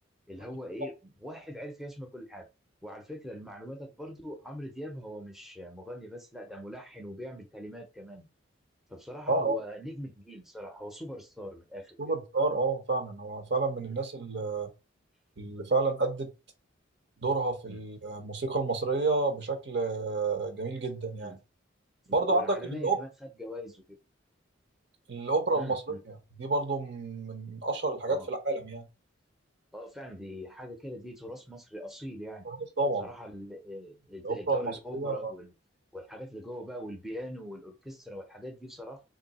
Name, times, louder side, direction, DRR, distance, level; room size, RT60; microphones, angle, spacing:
voice 1, 0.3-2.5 2.8-8.3 8.9-12.0 13.9-14.0 17.7-17.8 21.2-21.4 22.1-24.0 25.5-26.0 28.1-28.3 29.7-32.5 33.0-35.5 35.9-39.0, equal, ahead, 0.6 m, -42 dB
voice 2, 12.0-14.7 15.4-16.3 17.2-21.3 22.1-23.0 25.1-28.9 32.5-33.1 34.2-35.3, right 3 dB, 60° right, 1.0 m, -30 dB
3.1 x 2.7 x 4.1 m
head